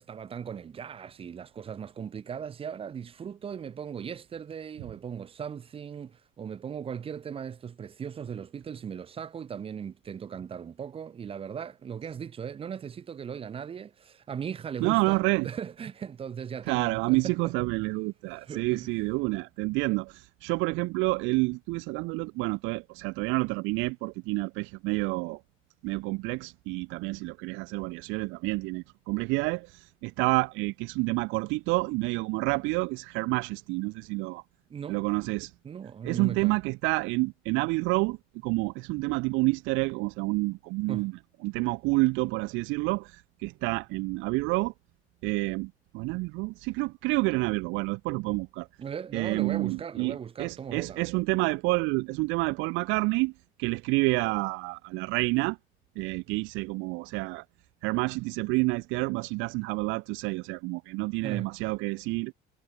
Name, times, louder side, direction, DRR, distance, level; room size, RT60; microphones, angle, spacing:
voice 1, 0.0-17.5 18.4-18.9 34.7-35.0 35.6-36.6 40.9-41.1 48.8-51.0 61.2-61.5, right 7 dB, 30° right, 3.8 m, -38 dB
voice 2, 14.8-15.5 16.7-25.4 25.8-34.4 34.9-35.5 36.0-38.2 38.4-41.1 41.4-44.7 45.2-48.7 49.1-53.3 53.6-55.6 56.0-57.4 57.8-62.3, right 25 dB, 85° right, 2.3 m, -29 dB
cardioid pair, 160°, 19 cm